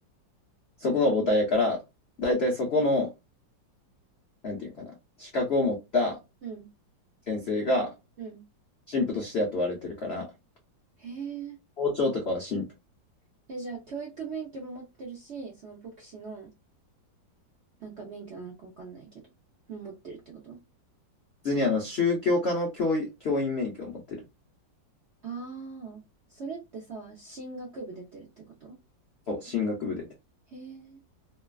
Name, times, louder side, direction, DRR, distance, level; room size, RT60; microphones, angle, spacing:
voice 1, 0.8-1.8 2.2-3.1 4.4-6.2 7.3-7.9 8.9-10.3 11.8-12.6 21.4-24.2 29.3-30.0, left 2 dB, 65° left, 0.6 m, -27 dB
voice 2, 11.0-11.6 13.5-16.5 17.8-19.2 19.7-20.6 25.2-26.0 26.3-28.8 30.5-31.0, right 5 dB, 60° right, 0.7 m, -40 dB
3.1 x 2.2 x 2.3 m
omnidirectional pair, 2.0 m